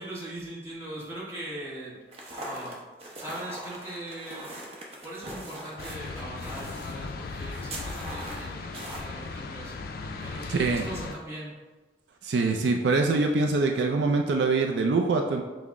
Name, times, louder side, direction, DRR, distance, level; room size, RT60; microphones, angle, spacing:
voice 1, 0.0-2.0 2.3-2.8 3.2-4.5 5.0-9.7 10.2-11.5 13.1-13.5, right 1 dB, 15° right, -7 dB, 1.1 m, -40 dB
sound 1, 2.1-9.0, right 1 dB, 35° right, 0.7 m, -41 dB
sound 2, 5.8-11.1, left 3 dB, 55° left, 0.3 m, -37 dB
voice 2, 10.5-10.9 12.2-15.4, right 3 dB, 70° right, 3 dB, 0.4 m, -24 dB
5.6 x 2.0 x 3.6 m, 1.2 s
head